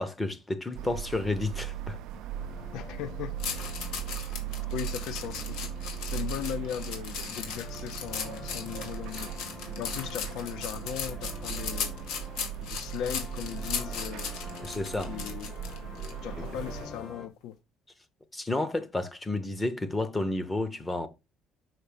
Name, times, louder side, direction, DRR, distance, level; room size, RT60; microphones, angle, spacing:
voice 1, 0.0-2.0 14.6-15.1 18.3-21.1, left 2 dB, 10° left, 0.7 m, -31 dB
sound 1, 0.7-16.9, right 10 dB, 70° right, 0.4 m, -39 dB
sound 2, 2.3-17.3, left 3 dB, 35° left, 1.2 m, -46 dB
voice 2, 2.7-3.4 4.1-4.3 4.7-5.7 6.0-12.0 12.6-14.3 15.1-15.6 16.2-17.6, left 10 dB, 70° left, 0.6 m, -38 dB
sound 3, 3.4-16.1 16.6-16.8, left 7 dB, 85° left, 2.1 m, -37 dB
5.8 x 5.4 x 5.0 m
cardioid pair, 170°, 0 cm